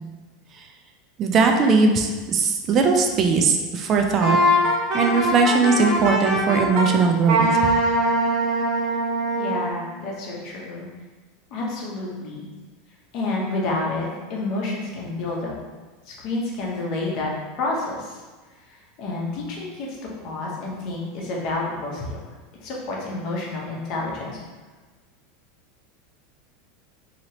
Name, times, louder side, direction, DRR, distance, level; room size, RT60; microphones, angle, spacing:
voice 1, 1.2-4.4 4.9-7.5, right 4 dB, 35° right, 3 dB, 0.3 m, -19 dB
Wind instrument woodwind instrument, 4.2-6.9 7.3-9.7, right 1 dB, 50° right, 0.8 m, -21 dB
voice 2, 9.4-10.9 11.5-12.5 13.1-15.5 16.1-17.3 17.6-18.2 18.7-22.2 22.6-24.4, left 2 dB, 50° left, -3 dB, 0.8 m, -29 dB
2.9 x 2.8 x 2.8 m, 1.3 s
supercardioid pair, 135°, 0 cm